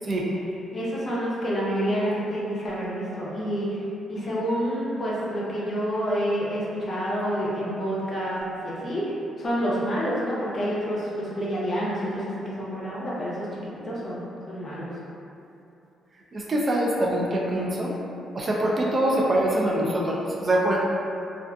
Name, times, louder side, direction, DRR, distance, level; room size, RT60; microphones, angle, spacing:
voice 1, 0.7-14.9, equal, 40° left, -7 dB, 0.7 m, -28 dB
voice 2, 16.3-17.9 18.3-20.8, right 1 dB, 35° right, -3 dB, 0.3 m, -24 dB
2.3 x 2.3 x 2.2 m, 2.8 s
cardioid pair, 90°, 0 cm